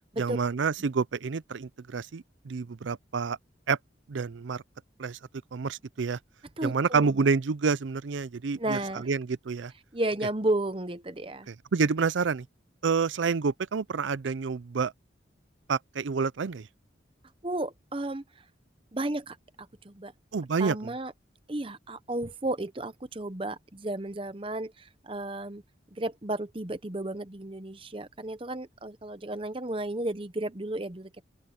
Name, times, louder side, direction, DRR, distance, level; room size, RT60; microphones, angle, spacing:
voice 1, 0.2-3.4 3.7-3.8 4.1-4.6 5.0-5.2 5.5-6.2 6.6-9.7 11.5-12.5 12.8-14.9 15.7-16.7 20.3-20.9, right 5 dB, 80° right, 0.5 m, -28 dB
voice 2, 6.6-7.2 8.6-9.1 9.9-11.5 17.4-18.2 18.9-20.1 20.6-21.1 21.5-25.6 25.9-31.3, right 1 dB, 30° right, 0.9 m, -33 dB
open air
head